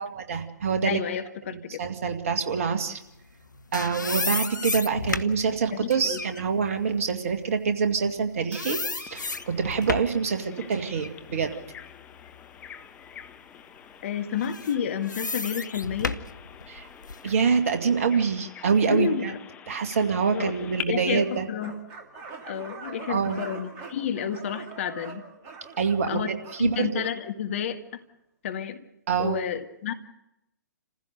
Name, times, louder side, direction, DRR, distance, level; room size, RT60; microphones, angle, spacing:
voice 1, 0.0-1.0 1.5-3.0 3.7-11.6 16.7-16.9 17.2-19.3 19.7-21.5 23.1-23.4 25.8-27.0 29.1-29.4, right 5 dB, 45° right, 6 dB, 2.0 m, -26 dB
voice 2, 0.9-1.8 5.7-6.2 14.0-16.2 18.9-19.4 20.3-20.5 20.9-21.7 22.4-25.2 26.1-26.3 26.6-28.0 28.4-28.8 29.2-29.9, left 8 dB, 45° left, 7 dB, 1.7 m, -30 dB
sound 1, 3.3-8.2 8.5-10.2 10.7-12.7 13.1-13.3 14.3-17.3, left 3 dB, 75° left, 1.0 m, -33 dB
Bird vocalization bird call bird song, 9.1-20.8, left 8 dB, 15° left, 0.9 m, -45 dB
sound 2, 21.1-27.2, right 4 dB, 25° right, 2.5 m, -43 dB
28.0 x 15.5 x 6.7 m, 0.86 s
figure-of-eight pair, 125°, 10 cm